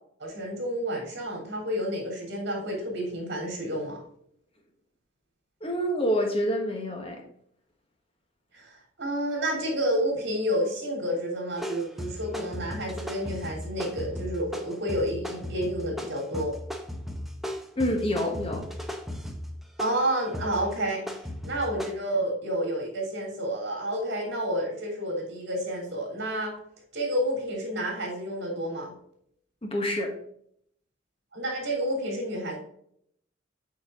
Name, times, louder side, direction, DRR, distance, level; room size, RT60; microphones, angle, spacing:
voice 1, 0.2-4.0 8.5-16.5 19.8-26.5 26.9-28.9 31.3-32.6, equal, 60° right, 0 dB, 3.1 m, -30 dB
voice 2, 5.6-7.2 17.8-18.7 29.6-30.1, equal, 30° left, 2 dB, 1.3 m, -27 dB
sound 1, 11.6-21.9, left 1 dB, ahead, 0.7 m, -36 dB
8.5 x 4.5 x 3.7 m, 0.68 s
head